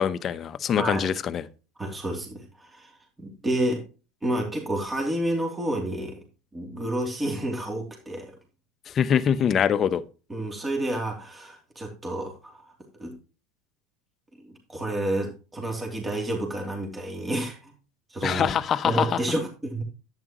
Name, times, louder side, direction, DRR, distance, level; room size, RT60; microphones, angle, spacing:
voice 1, 0.0-1.4 8.9-10.0 18.2-19.1, left 8 dB, 35° left, 0.8 m, -24 dB
voice 2, 0.8-1.1 1.8-3.8 4.2-6.2 6.5-8.3 10.3-13.1 14.4-17.7 18.1-18.5 18.8-19.8, right 1 dB, 15° right, 2.9 m, -30 dB
11.0 x 9.2 x 3.0 m
hypercardioid pair, 80°, 0 cm